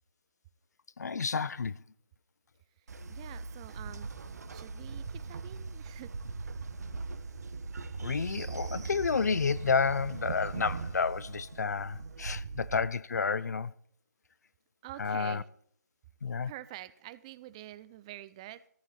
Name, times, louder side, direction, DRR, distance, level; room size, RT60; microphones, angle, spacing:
voice 1, 1.0-1.8 8.0-13.7 15.0-15.4 16.2-16.5, left 5 dB, 65° left, 0.7 m, -30 dB
Train, 2.9-12.9, right 4 dB, 60° right, 1.4 m, -40 dB
voice 2, 3.1-4.1 4.5-6.1 14.8-15.5 16.5-18.7, right 15 dB, 20° right, 0.4 m, -47 dB
14.5 x 13.0 x 4.2 m
figure-of-eight pair, 150°, 10 cm